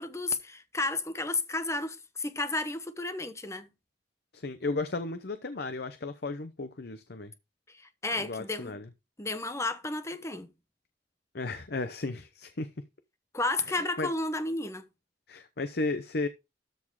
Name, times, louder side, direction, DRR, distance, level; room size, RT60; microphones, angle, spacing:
voice 1, 0.0-3.7 7.7-8.8 9.2-10.5 13.3-14.9, left 2 dB, 15° left, 1.0 m, -32 dB
voice 2, 4.3-7.3 8.2-8.9 11.3-12.7 13.7-14.1 15.3-16.3, left 3 dB, 60° left, 0.8 m, -34 dB
13.0 x 4.4 x 4.7 m
head